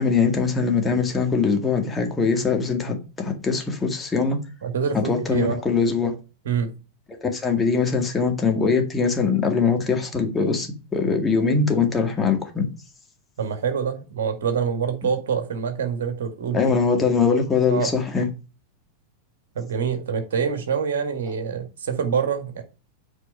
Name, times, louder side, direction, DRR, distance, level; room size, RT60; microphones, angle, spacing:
voice 1, 0.0-4.4 4.9-6.1 7.1-12.7 16.5-18.3, left 5 dB, 15° left, 1.9 m, -22 dB
voice 2, 4.6-5.6 6.5-6.7 13.4-16.6 17.7-17.9 19.6-22.6, right 6 dB, 60° right, 1.8 m, -25 dB
8.3 x 4.5 x 5.5 m
figure-of-eight pair, 90°, 0 cm